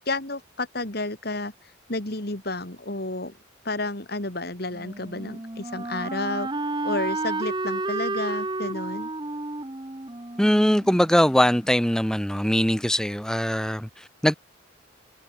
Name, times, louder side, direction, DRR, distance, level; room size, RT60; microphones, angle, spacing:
voice 1, 0.1-1.5 1.9-3.3 3.6-6.5 6.8-9.1, left 2 dB, 50° left, 2.7 m, -31 dB
Wind instrument woodwind instrument, 4.7-11.6, right 2 dB, 20° right, 0.9 m, -31 dB
voice 2, 10.4-14.3, equal, 5° left, 0.7 m, -21 dB
head